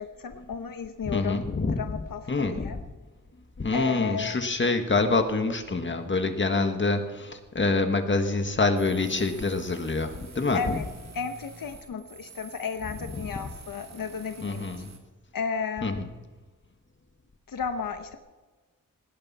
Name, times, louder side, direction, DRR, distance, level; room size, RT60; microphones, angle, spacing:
voice 1, 0.0-1.4 1.8-2.8 3.7-4.4 10.5-10.8 11.1-14.9 15.3-16.0 17.5-18.2, left 6 dB, 90° left, 7 dB, 1.1 m, -33 dB
voice 2, 1.0-2.0 2.3-2.8 3.6-10.8 11.9-12.0 13.4-13.5 14.4-14.9 15.8-16.1, left 3 dB, 35° left, 6 dB, 1.6 m, -26 dB
sound 1, 8.8-15.0, right 4 dB, 55° right, 2.3 m, -48 dB
18.5 x 18.0 x 4.2 m, 1.3 s
wide cardioid pair, 155°, 33 cm